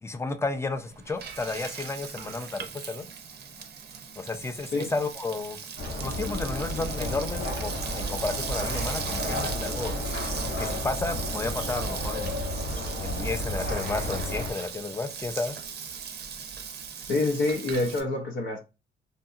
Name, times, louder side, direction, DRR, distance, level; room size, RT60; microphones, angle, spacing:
voice 1, 0.0-3.1 4.2-5.6 6.0-10.0 10.6-12.4 13.0-15.6, left 3 dB, 15° left, 0.4 m, -32 dB
Frying (food), 0.7-18.0, right 7 dB, 55° right, 0.5 m, -38 dB
sound 1, 5.8-14.5, left 1 dB, 90° left, 1.1 m, -32 dB
voice 2, 17.0-18.6, left 2 dB, 70° left, 0.6 m, -26 dB
2.7 x 2.6 x 2.4 m
cardioid pair, 90°, 20 cm